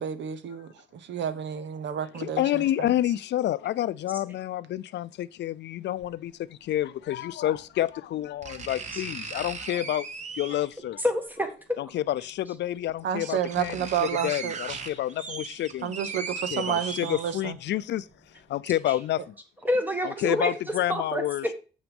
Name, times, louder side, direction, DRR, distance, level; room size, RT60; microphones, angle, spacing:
voice 1, 0.0-2.9 13.0-14.8 15.8-17.6, right 9 dB, 85° right, 1.0 m, -31 dB
voice 2, 1.9-10.1 10.4-11.0 11.8-15.9 16.5-18.1 18.5-19.3 20.0-21.5, left 13 dB, 75° left, 0.5 m, -29 dB
sound 1, 6.0-6.1 7.6-7.7 8.4-10.8 12.2-12.3 12.9-13.0 13.2-17.7 18.1-18.2, right 4 dB, 40° right, 1.1 m, -38 dB
voice 3, 11.0-11.8 16.0-16.1 18.9-19.0 19.6-20.5 20.9-21.5, left 1 dB, 10° right, 1.5 m, -28 dB
8.1 x 6.0 x 5.4 m
cardioid pair, 150°, 18 cm